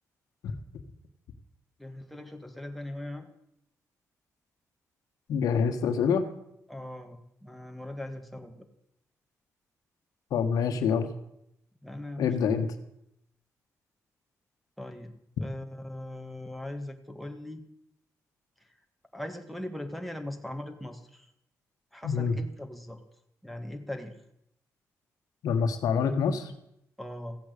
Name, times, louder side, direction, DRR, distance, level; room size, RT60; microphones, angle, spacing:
voice 1, 1.8-3.3 6.7-8.7 11.8-12.3 14.8-17.6 19.1-21.3 21.9-23.0 23.4-24.2 27.0-27.4, left 1 dB, ahead, 4 dB, 1.9 m, -40 dB
voice 2, 5.3-6.3 10.3-11.1 12.2-12.7 22.0-22.3 25.4-26.5, left 6 dB, 85° left, 8 dB, 1.4 m, -26 dB
15.0 x 8.5 x 8.3 m, 0.78 s
cardioid pair, 90°, 6 cm